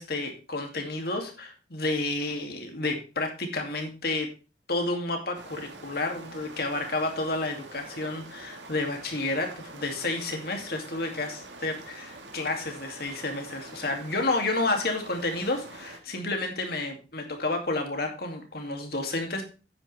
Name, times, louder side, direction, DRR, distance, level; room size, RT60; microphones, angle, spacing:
voice 1, 0.0-4.3 4.7-19.4, left 2 dB, 60° left, 3 dB, 2.4 m, -30 dB
sound 1, 5.3-16.0, right 2 dB, 80° right, 1.8 m, -45 dB
9.8 x 9.2 x 3.4 m, 0.33 s
head